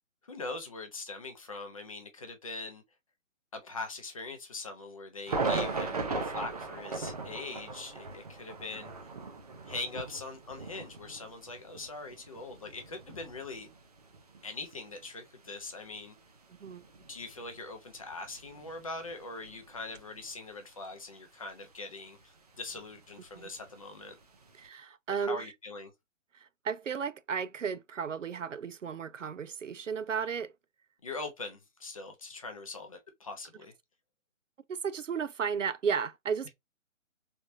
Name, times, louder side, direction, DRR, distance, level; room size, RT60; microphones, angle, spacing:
voice 1, 0.3-2.8 3.5-8.9 9.7-13.7 14.4-16.1 17.1-24.2 25.2-25.9 31.0-33.7, left 3 dB, 25° left, 0.7 m, -42 dB
sound 1, 5.3-20.4 20.8-20.9 22.2-24.7, right 3 dB, 30° right, 0.7 m, -39 dB
voice 2, 24.6-25.5 26.3-30.5 34.7-36.5, right 6 dB, 70° right, 0.6 m, -34 dB
4.0 x 3.4 x 2.6 m
figure-of-eight pair, 140°, 40 cm